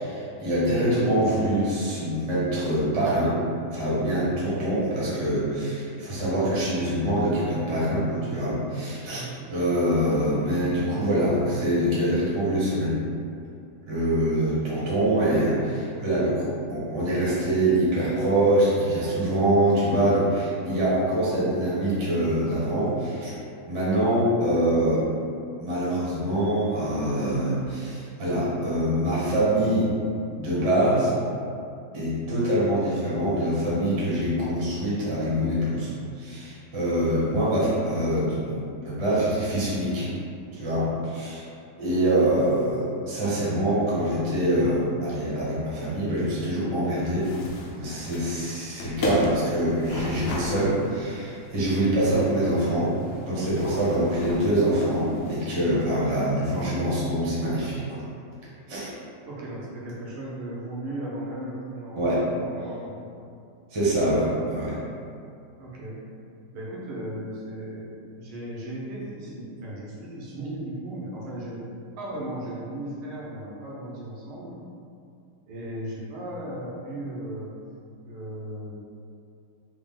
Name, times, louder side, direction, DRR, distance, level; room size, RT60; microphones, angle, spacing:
voice 1, 0.0-3.4 3.7-12.9 13.9-23.4 23.7-25.0 25.6-29.9 30.4-31.1 31.9-35.9 36.2-40.1 40.5-41.4 41.8-47.3 47.7-53.0 53.2-58.0 58.7-58.9 62.0-62.2 63.7-64.8, right 1 dB, 35° right, -9 dB, 0.4 m, -24 dB
voice 2, 9.1-9.4 59.2-63.0 65.6-66.0 66.5-71.6 72.0-74.6 75.5-77.5 78.0-78.7, right 1 dB, 90° right, -5 dB, 1.7 m, -36 dB
sound 1, 47.2-55.4, left 1 dB, 75° left, 1.2 m, -36 dB
4.0 x 2.0 x 3.6 m, 2.5 s
omnidirectional pair, 2.3 m